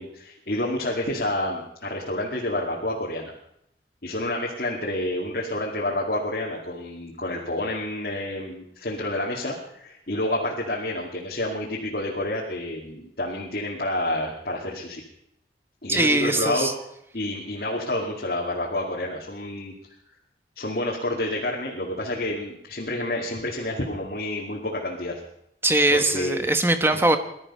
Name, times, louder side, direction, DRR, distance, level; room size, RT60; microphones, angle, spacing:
voice 1, 0.0-3.3 4.0-15.0 15.8-16.7 17.1-19.7 20.6-25.2 25.9-26.4 26.9-27.0, left 1 dB, 55° left, -3 dB, 2.2 m, -29 dB
voice 2, 15.9-16.7 25.6-27.2, right 2 dB, 15° right, 8 dB, 1.1 m, -21 dB
19.5 x 12.5 x 5.5 m, 0.76 s
head